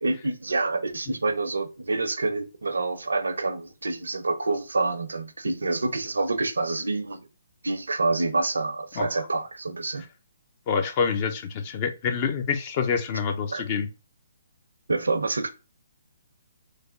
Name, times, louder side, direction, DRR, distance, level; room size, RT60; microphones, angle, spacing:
voice 1, 0.0-7.3 7.6-10.0 13.5-13.6 14.9-15.5, right 3 dB, 85° right, 0.6 m, -27 dB
voice 2, 9.0-9.3 10.7-13.9, left 6 dB, 35° left, 0.6 m, -27 dB
3.3 x 2.1 x 3.7 m
figure-of-eight pair, 140°, 0 cm